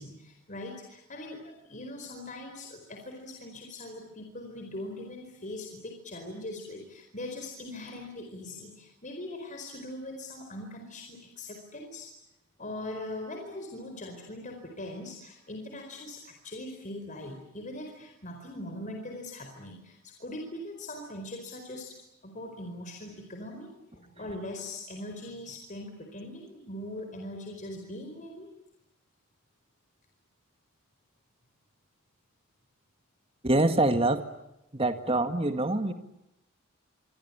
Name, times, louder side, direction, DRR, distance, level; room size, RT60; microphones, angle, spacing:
voice 1, 0.0-12.1 12.6-21.9 22.2-28.5, left 1 dB, 35° left, 3 dB, 4.6 m, -41 dB
voice 2, 33.4-34.2 34.7-35.9, right 2 dB, 25° right, 8 dB, 1.8 m, -25 dB
26.5 x 25.5 x 8.7 m, 0.88 s
head